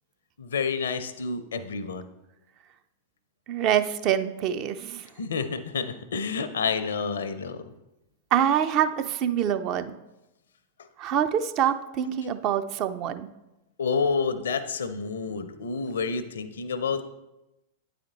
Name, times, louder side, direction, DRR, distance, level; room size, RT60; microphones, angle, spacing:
voice 1, 0.4-2.0 5.2-7.6 13.8-17.0, left 5 dB, 70° left, 12 dB, 0.5 m, -29 dB
voice 2, 3.5-5.1 8.3-9.9 11.0-13.3, right 9 dB, 40° right, 10 dB, 0.5 m, -25 dB
8.8 x 4.2 x 4.0 m, 0.95 s
figure-of-eight pair, 95°, 0 cm